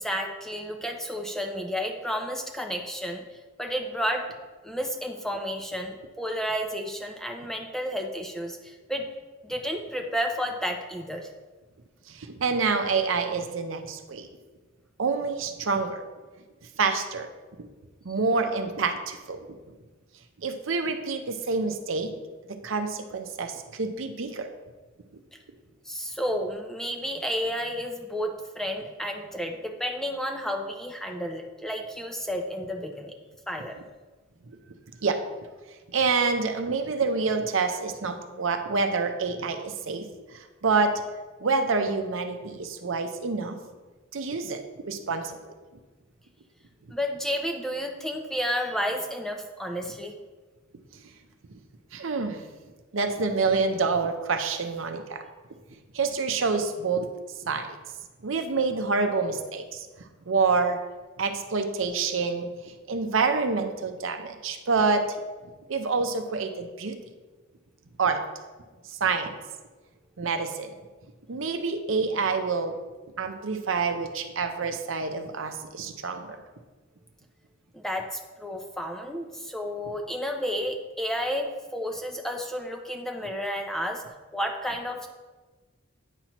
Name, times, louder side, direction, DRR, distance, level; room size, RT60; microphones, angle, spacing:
voice 1, 0.0-3.2 3.6-4.3 4.6-9.1 9.4-11.3 25.9-33.1 33.5-33.8 46.9-50.1 77.7-84.0 84.3-85.1, equal, ahead, 3 dB, 0.5 m, -31 dB
voice 2, 12.1-14.3 15.0-16.0 16.8-17.3 18.0-19.5 20.4-22.1 22.6-24.5 35.0-35.2 35.9-40.1 40.3-40.9 41.4-43.6 44.1-45.4 51.5-51.6 51.9-52.4 52.9-55.2 55.9-57.1 57.4-57.7 58.2-59.9 60.3-60.8 61.2-65.0 65.7-66.9 68.0-68.2 68.9-69.3 70.2-70.7 71.3-72.8 73.2-76.4, right 4 dB, 70° right, 6 dB, 0.6 m, -27 dB
9.0 x 5.8 x 3.0 m, 1.3 s
head